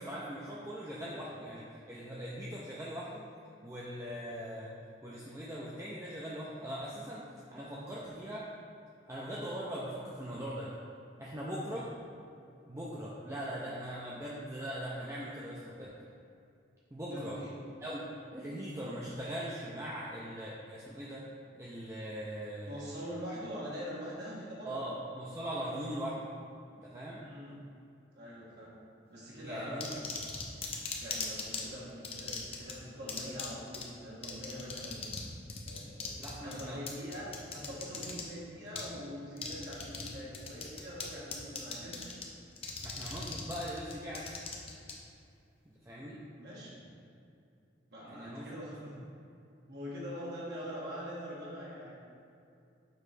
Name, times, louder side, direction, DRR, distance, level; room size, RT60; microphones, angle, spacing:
voice 1, 0.0-3.2 3.6-4.8 5.0-7.2 7.5-8.5 9.1-10.7 11.2-11.9 12.7-15.9 16.9-17.4 17.8-18.0 18.3-21.3 21.5-22.8 24.6-26.3 26.8-27.2 29.4-30.1 36.2-36.8 42.8-44.3 45.9-46.2 48.1-48.6, equal, 15° right, -6 dB, 0.5 m, -40 dB
voice 2, 17.1-17.5 22.7-24.8 27.2-27.6 28.1-28.7 29.1-30.2 31.0-35.2 35.6-42.0 46.4-46.8 47.9-49.0 49.7-51.9, equal, 60° right, -7 dB, 1.3 m, -43 dB
sound 1, 29.8-31.6 32.0-32.7 33.1-33.5 33.7-33.8 34.2-35.2 35.5-38.2 38.8-38.9 39.4-40.1 40.3-41.0 41.3-42.2 42.6-44.9, left 5 dB, 30° left, 0.6 m, -39 dB
6.7 x 3.1 x 4.8 m, 2.6 s
head